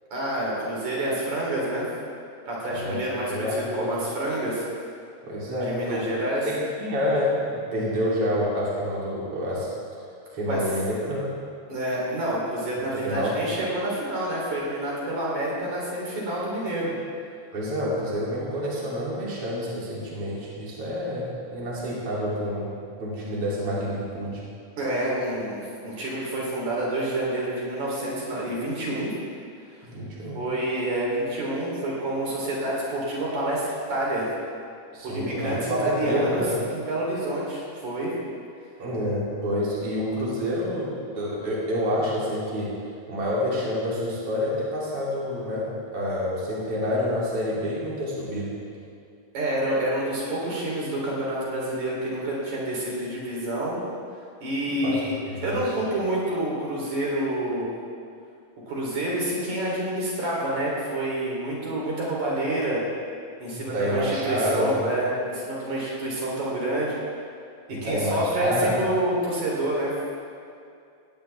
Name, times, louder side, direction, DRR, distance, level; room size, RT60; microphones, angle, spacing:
voice 1, 0.1-1.9 2.5-4.6 5.6-6.5 10.5-10.6 11.7-16.9 24.8-29.1 30.3-34.3 35.0-38.1 49.3-53.8 54.4-55.1 55.4-57.7 58.7-62.8 63.4-66.9 67.7-69.9, right 1 dB, 75° right, -5 dB, 5.0 m, -28 dB
voice 2, 2.7-3.9 5.2-6.0 6.5-9.7 10.3-11.3 12.9-13.3 17.5-22.7 23.0-24.4 29.8-30.4 34.9-36.5 38.8-42.7 43.1-45.6 45.9-48.5 54.7-55.6 63.5-64.8 67.7-68.7, equal, 50° right, -7 dB, 4.2 m, -28 dB
18.5 x 18.0 x 3.5 m, 2.4 s
omnidirectional pair, 3.3 m